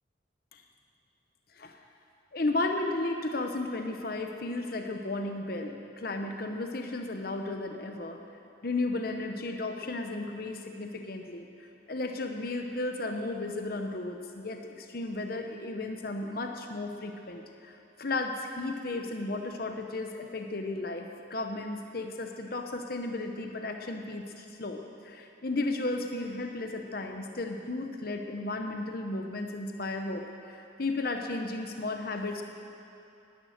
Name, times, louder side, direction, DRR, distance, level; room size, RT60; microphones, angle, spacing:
voice 1, 2.3-8.2 8.6-11.5 11.9-17.7 18.0-32.4, left 2 dB, 50° left, 4 dB, 0.9 m, -34 dB
18.0 x 11.0 x 6.5 m, 2.7 s
head